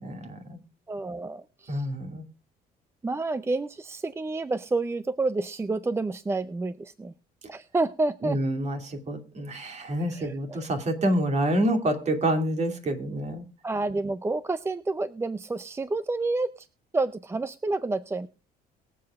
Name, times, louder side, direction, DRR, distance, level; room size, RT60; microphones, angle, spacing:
voice 1, 0.0-0.6 1.7-2.2 8.2-13.4, right 1 dB, 40° right, 6 dB, 2.6 m, -27 dB
voice 2, 0.9-1.9 3.0-7.1 7.5-8.4 10.0-10.7 13.6-16.7 16.9-18.3, right 3 dB, 15° right, 14 dB, 0.5 m, -29 dB
23.0 x 7.7 x 2.4 m, 0.33 s
cardioid pair, 110°, 17 cm